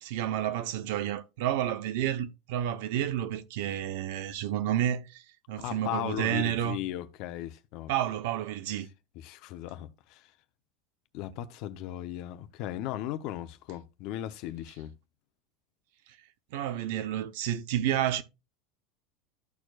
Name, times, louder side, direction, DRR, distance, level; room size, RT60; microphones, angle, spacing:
voice 1, 0.0-5.2 5.5-6.8 7.9-8.9 16.5-18.2, right 11 dB, 75° right, 0.8 m, -30 dB
voice 2, 5.6-7.9 9.2-10.2 11.1-14.9, left 13 dB, 60° left, 0.8 m, -37 dB
13.5 x 4.6 x 2.4 m
supercardioid pair, 130°, 0 cm